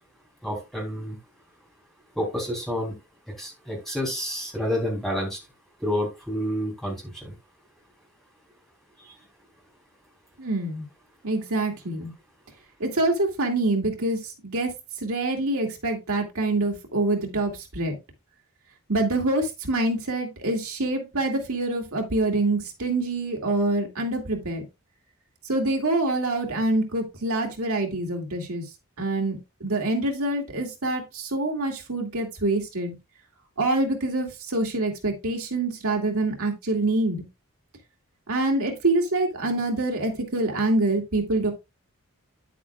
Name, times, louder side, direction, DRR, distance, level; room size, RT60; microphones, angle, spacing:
voice 1, 0.4-1.2 2.1-3.0 3.4-5.4 5.8-7.3, equal, ahead, -2 dB, 3.3 m, -29 dB
voice 2, 10.4-10.8 11.2-12.1 12.8-14.7 15.0-18.0 18.9-24.6 25.4-28.7 29.0-32.9 33.6-37.2 38.3-41.5, right 2 dB, 75° right, 2 dB, 2.3 m, -26 dB
9.7 x 8.3 x 2.4 m, 0.23 s
head